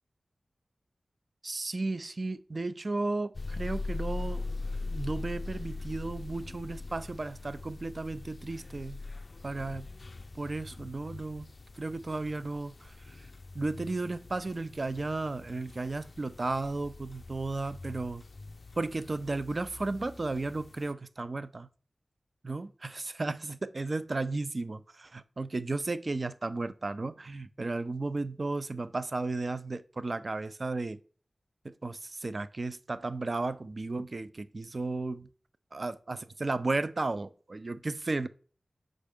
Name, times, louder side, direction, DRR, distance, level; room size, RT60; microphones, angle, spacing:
voice 1, 1.4-4.4 4.9-9.0 9.4-9.9 10.3-11.5 11.8-13.3 13.5-18.2 18.8-21.7 22.4-31.0 31.6-35.3 35.7-38.3, right 3 dB, 50° right, 0.4 m, -34 dB
sound 1, 3.3-20.9, left 3 dB, 55° left, 0.3 m, -42 dB
6.5 x 5.0 x 3.5 m
wide cardioid pair, 70°, 0 cm